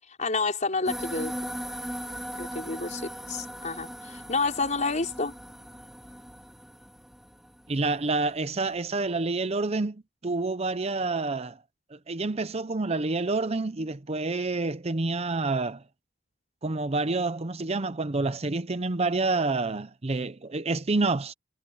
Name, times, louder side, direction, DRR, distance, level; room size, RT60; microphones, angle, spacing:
voice 1, 0.0-1.3 2.4-5.3, left 3 dB, 40° left, 5.6 m, -29 dB
sound 1, 0.9-8.5, equal, ahead, 3.2 m, -39 dB
voice 2, 7.7-11.6 11.9-15.8 16.6-21.3, right 3 dB, 30° right, 0.7 m, -28 dB
head